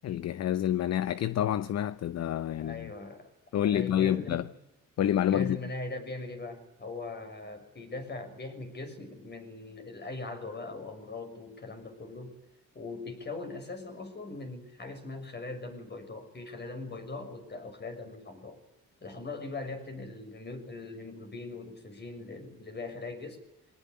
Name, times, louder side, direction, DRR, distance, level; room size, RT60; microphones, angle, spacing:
voice 1, 0.0-2.9 3.5-4.5 5.0-5.6, left 10 dB, 60° left, 0.9 m, -28 dB
voice 2, 2.6-3.3 3.6-4.5 5.3-12.4 12.7-18.6 19.0-23.4, left 3 dB, 35° left, 6.5 m, -40 dB
24.0 x 19.0 x 9.9 m
cardioid pair, 90°, 30 cm